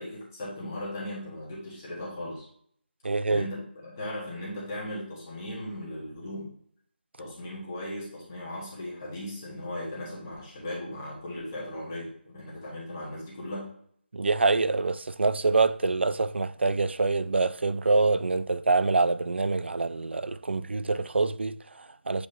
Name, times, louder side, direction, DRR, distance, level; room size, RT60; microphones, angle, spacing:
voice 1, 0.0-2.5 3.2-6.5 7.2-13.7, left 1 dB, 15° left, 1.3 m, -37 dB
voice 2, 3.0-3.5 14.1-22.3, right 3 dB, 80° right, 0.4 m, -25 dB
8.2 x 4.8 x 2.7 m
figure-of-eight pair, 175°, 6 cm